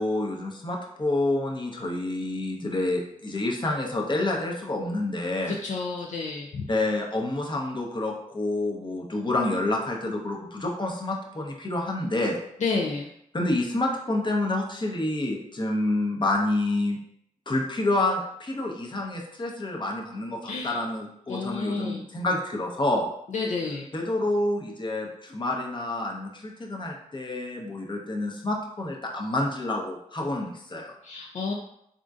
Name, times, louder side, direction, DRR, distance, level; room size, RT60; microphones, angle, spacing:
voice 1, 0.0-5.5 6.7-12.4 13.3-17.0 17.5-23.1 23.9-30.9, left 2 dB, 35° left, 0 dB, 0.7 m, -28 dB
voice 2, 5.5-6.7 12.6-13.1 20.4-20.8 21.3-22.0 23.3-23.9 31.0-31.5, left 4 dB, 60° left, 0 dB, 0.4 m, -30 dB
3.6 x 2.5 x 2.4 m, 0.74 s
cardioid pair, 45°, 14 cm